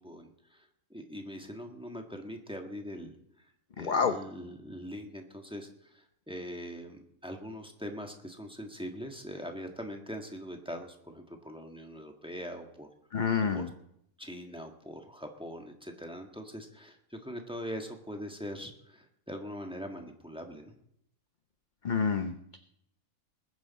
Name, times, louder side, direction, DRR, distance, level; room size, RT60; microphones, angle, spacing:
voice 1, 0.0-3.4 3.8-12.9 13.5-13.7 14.2-20.7, equal, 5° right, 3 dB, 1.5 m, -42 dB
voice 2, 3.8-4.2 13.1-13.7 21.8-22.6, left 6 dB, 45° left, 8 dB, 0.6 m, -28 dB
20.5 x 10.0 x 4.2 m, 0.75 s
omnidirectional pair, 1.6 m